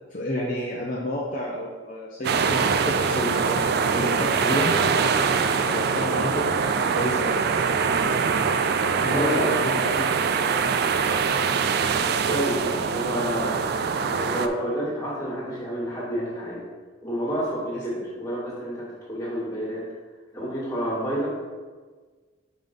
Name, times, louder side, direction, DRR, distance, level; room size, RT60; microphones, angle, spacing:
voice 1, 0.1-3.6 3.9-4.7 5.4-7.4 9.0-10.1, left 1 dB, 40° left, -4 dB, 0.7 m, -30 dB
sound 1, 2.2-14.5, right 5 dB, 50° right, 0.3 m, -23 dB
voice 2, 9.1-9.5 12.3-13.6 14.1-16.6 17.0-19.8 20.3-21.3, equal, 20° left, -5 dB, 1.8 m, -29 dB
5.4 x 5.3 x 3.7 m, 1.4 s
head